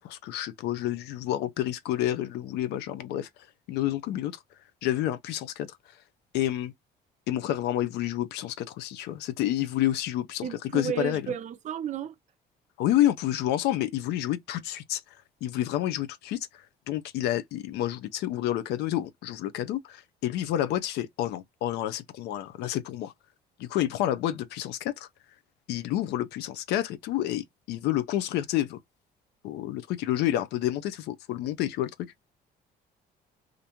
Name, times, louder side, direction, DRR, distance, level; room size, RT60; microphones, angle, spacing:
voice 1, 0.0-3.3 3.7-4.3 4.8-5.8 6.3-6.7 7.3-11.3 12.8-15.0 15.4-23.1 23.6-25.1 25.7-28.8 29.4-31.9, left 13 dB, 80° left, 0.5 m, -29 dB
voice 2, 10.4-12.1, right 9 dB, 45° right, 0.5 m, -33 dB
2.5 x 2.1 x 2.8 m
cardioid pair, 110°, 17 cm